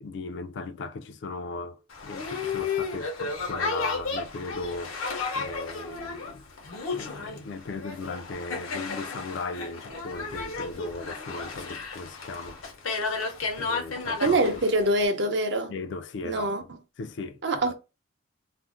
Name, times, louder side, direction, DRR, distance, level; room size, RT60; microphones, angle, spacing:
voice 1, 0.0-5.0 5.3-6.4 6.9-12.6 13.6-14.6 15.7-16.5 17.0-17.7, left 3 dB, 60° left, 0.3 m, -37 dB
Boat Water vehicle, 1.9-15.1, left 4 dB, 90° left, 0.7 m, -33 dB
voice 2, 14.2-15.7 16.2-16.6 17.4-17.7, right 1 dB, 55° right, 0.5 m, -24 dB
2.5 x 2.0 x 3.6 m
head